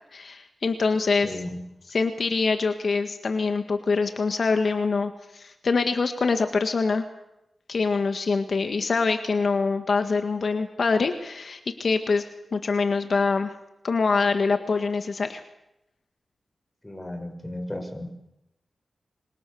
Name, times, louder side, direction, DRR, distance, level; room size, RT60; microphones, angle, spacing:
voice 1, 0.1-1.4 1.9-7.1 7.7-12.2 12.5-13.5 13.8-15.4, left 4 dB, 65° left, 7 dB, 1.8 m, -24 dB
voice 2, 1.2-1.6 16.8-18.1, left 1 dB, 15° left, 5 dB, 6.6 m, -34 dB
26.5 x 25.5 x 7.1 m, 0.90 s
cardioid pair, 65°, 0 cm